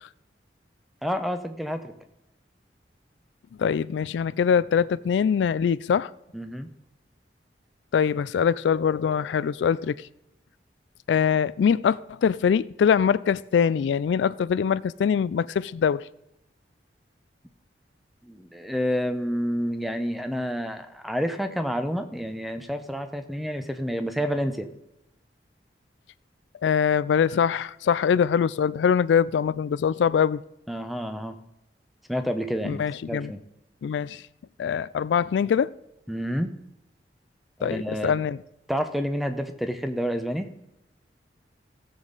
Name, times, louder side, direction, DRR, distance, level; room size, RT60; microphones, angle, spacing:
voice 1, 1.0-1.9 6.3-6.7 18.2-24.7 30.7-31.4 32.1-33.4 36.1-36.5 37.6-38.1 38.7-40.5, equal, ahead, 0.7 m, -29 dB
voice 2, 3.6-6.1 7.9-10.0 11.1-16.0 26.6-30.4 32.6-33.3 33.8-34.2 34.6-35.7 37.6-38.4, left 7 dB, 90° left, 0.3 m, -23 dB
16.5 x 7.2 x 4.0 m
head